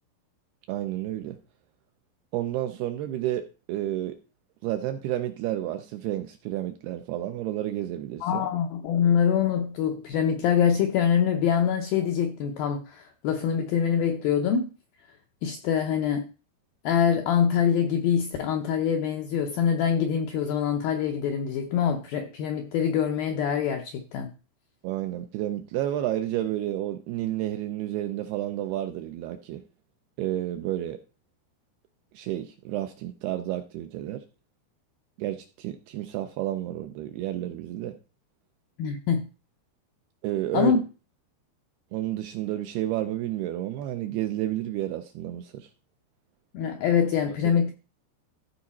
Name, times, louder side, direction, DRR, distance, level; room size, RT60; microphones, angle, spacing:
voice 1, 0.7-1.4 2.3-4.2 4.6-8.4 24.8-29.6 30.2-31.0 32.1-34.2 35.2-37.9 40.2-40.8 41.9-45.7, right 13 dB, 80° right, 2.3 m, -31 dB
voice 2, 8.2-14.7 15.4-16.2 16.8-24.3 38.8-39.3 40.5-40.8 46.5-47.7, left 8 dB, 80° left, 2.1 m, -24 dB
14.5 x 4.9 x 4.2 m
omnidirectional pair, 5.1 m